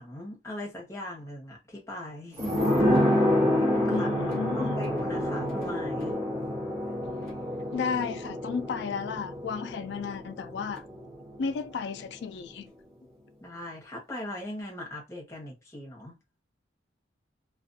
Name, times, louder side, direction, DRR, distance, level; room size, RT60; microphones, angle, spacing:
voice 1, 0.0-2.7 3.0-3.3 3.6-4.1 4.6-6.2 13.4-16.2, left 1 dB, 15° left, 0.9 m, -40 dB
sound 1, 2.4-11.7 12.0-12.1, left 1 dB, 55° right, 1.0 m, -28 dB
voice 2, 3.9-4.8 7.7-10.8 11.4-12.7, left 6 dB, 70° left, 0.3 m, -33 dB
2.4 x 2.3 x 2.6 m
head